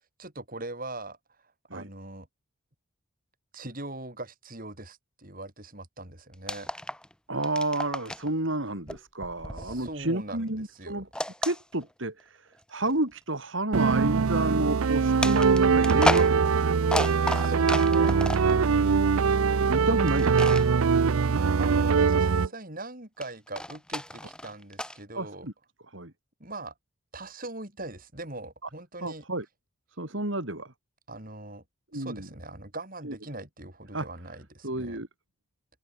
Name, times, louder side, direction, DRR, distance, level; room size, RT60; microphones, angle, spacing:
voice 1, 0.2-1.2 1.7-2.3 3.5-6.7 9.6-11.0 17.3-18.2 21.6-25.5 26.4-26.7 27.1-29.2 31.1-31.6 31.9-35.0, right 2 dB, 40° right, 7.8 m, -41 dB
sound 1, 6.3-7.1 7.4-8.3 8.9-10.3 11.1-12.2 12.9-13.0 15.2-18.6 20.1-20.7 23.2-25.0, left 1 dB, 5° left, 7.4 m, -32 dB
voice 2, 7.3-11.1 11.4-16.8 18.5-20.5 25.1-25.5 25.9-26.1 28.6-28.7 29.0-29.5 30.0-30.7 31.9-32.3 33.0-33.2 33.9-34.1 34.6-35.1, right 2 dB, 60° right, 3.8 m, -31 dB
sound 2, 13.7-22.5, right 5 dB, 85° right, 0.5 m, -22 dB
open air
head